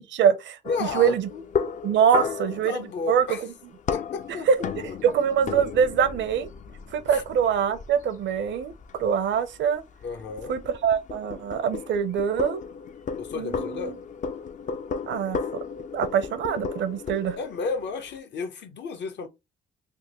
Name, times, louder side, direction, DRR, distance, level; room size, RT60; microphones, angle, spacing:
voice 1, 0.0-0.6 0.9-1.3 1.8-3.5 4.5-4.6 5.0-6.5 6.9-9.8 10.5-12.6 13.3-13.9 15.1-15.4 15.9-17.4, right 7 dB, 70° right, 0.6 m, -24 dB
sound 1, 0.6-18.2, left 6 dB, 40° left, 0.4 m, -35 dB
voice 2, 0.7-1.4 2.1-2.3 2.6-3.4 3.9-4.9 7.1-7.2 10.0-10.6 13.1-14.0 17.4-19.3, left 4 dB, 60° left, 0.8 m, -33 dB
3.5 x 2.1 x 2.9 m
cardioid pair, 90°, 20 cm